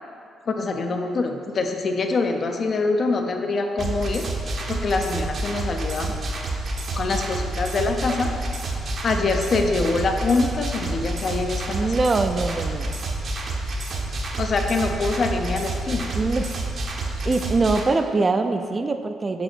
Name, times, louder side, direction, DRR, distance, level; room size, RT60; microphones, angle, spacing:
voice 1, 0.5-4.2 4.7-6.1 6.9-8.3 9.0-11.9 14.4-16.1, left 3 dB, 50° left, 5 dB, 0.6 m, -24 dB
sound 1, 3.8-17.8, right 2 dB, 55° right, 0.8 m, -29 dB
voice 2, 11.7-12.9 16.1-16.5 17.2-19.4, right 3 dB, 30° right, 8 dB, 0.4 m, -23 dB
5.3 x 4.8 x 4.4 m, 2.3 s
cardioid pair, 90°, 0 cm